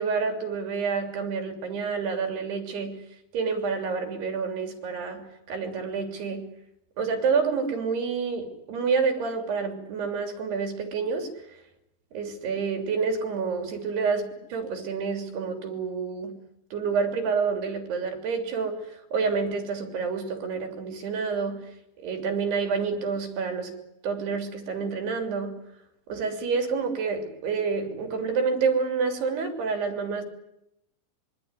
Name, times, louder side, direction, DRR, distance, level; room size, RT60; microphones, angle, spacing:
voice 1, 0.0-2.9 3.3-6.4 7.0-11.3 12.1-16.3 16.7-21.6 22.0-23.7 24.0-25.5 26.1-30.2, right 5 dB, 85° right, 5 dB, 5.3 m, -28 dB
25.5 x 23.5 x 9.7 m, 0.83 s
omnidirectional pair, 4.5 m